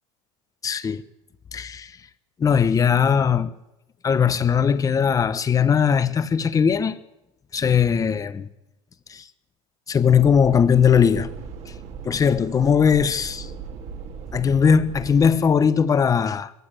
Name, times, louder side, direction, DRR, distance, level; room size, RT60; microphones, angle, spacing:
voice 1, 0.6-1.0 1.5-1.9 2.4-3.5 4.0-7.0 7.5-8.5 9.1-9.2 9.9-11.3 12.0-13.5 14.3-16.5, left 7 dB, 20° left, 1.1 m, -19 dB
sound 1, 10.0-15.4, right 5 dB, 45° right, 2.3 m, -37 dB
21.0 x 15.0 x 8.4 m
supercardioid pair, 130°, 16 cm